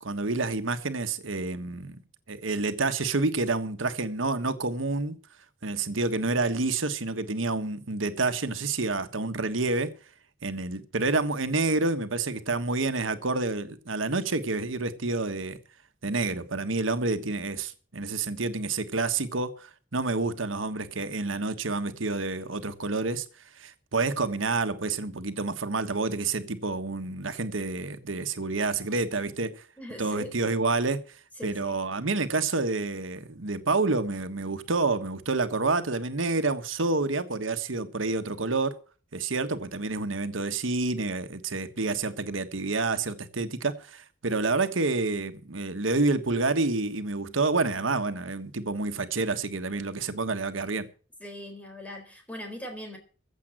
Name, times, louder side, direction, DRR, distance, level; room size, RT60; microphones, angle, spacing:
voice 1, 0.0-2.0 2.3-5.2 5.6-9.9 10.4-15.6 16.0-23.2 23.6-29.6 30.0-31.0 31.4-38.8 39.1-50.9, right 3 dB, 90° right, 1.4 m, -28 dB
voice 2, 29.8-30.3 31.4-31.8 51.2-53.0, equal, 5° left, 4.1 m, -40 dB
15.5 x 7.4 x 7.6 m
head